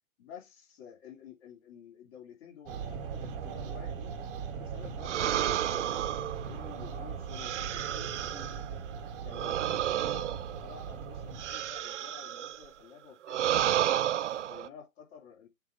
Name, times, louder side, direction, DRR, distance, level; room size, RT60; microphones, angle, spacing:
voice 1, 0.2-4.3 4.6-6.0 6.4-8.9 9.2-13.4 13.7-15.5, left 8 dB, 45° left, 3.3 m, -51 dB
sound 1, 2.7-11.9, right 6 dB, 40° right, 1.3 m, -40 dB
sound 2, 5.0-8.7 9.3-12.6 13.2-14.7, right 11 dB, 55° right, 0.5 m, -32 dB
7.9 x 3.0 x 4.9 m
figure-of-eight pair, 125°, 43 cm